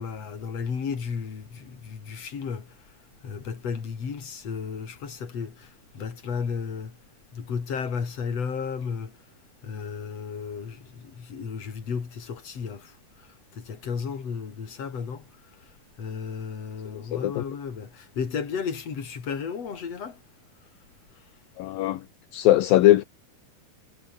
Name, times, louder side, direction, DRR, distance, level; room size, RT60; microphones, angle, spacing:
voice 1, 0.0-2.7 3.2-6.9 7.3-9.1 9.6-13.3 13.5-15.2 16.0-20.2, left 6 dB, 40° left, 4.2 m, -33 dB
voice 2, 16.9-17.4 21.6-22.0 22.3-23.0, left 15 dB, 70° left, 2.7 m, -20 dB
omnidirectional pair, 4.6 m